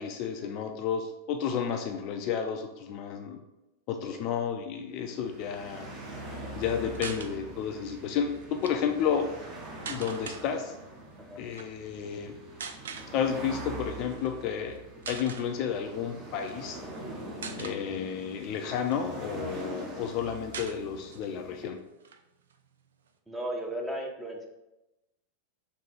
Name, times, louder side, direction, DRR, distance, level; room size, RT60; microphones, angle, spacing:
voice 1, 0.0-3.4 3.9-5.9 6.5-9.3 9.9-10.8 11.4-12.4 13.1-14.8 15.1-16.8 17.6-21.8, left 7 dB, 40° left, 5 dB, 0.4 m, -31 dB
sound 1, 4.9-21.7, right 1 dB, 30° right, 1.1 m, -43 dB
sound 2, 6.9-7.3 8.4-8.7 9.9-10.4 11.5-11.7 12.6-13.1 14.1-14.3 14.7-14.8 15.0-15.5 16.4-17.0 17.4-17.8 18.4-19.4 19.8-19.9 20.1-20.2 20.5-21.3 21.6-21.7 22.0-23.1, right 6 dB, 65° right, 0.4 m, -41 dB
voice 2, 17.5-17.8 23.3-24.5, right 1 dB, 10° right, 1 dB, 0.8 m, -36 dB
3.8 x 2.7 x 4.7 m, 0.96 s
figure-of-eight pair, 90°, 0 cm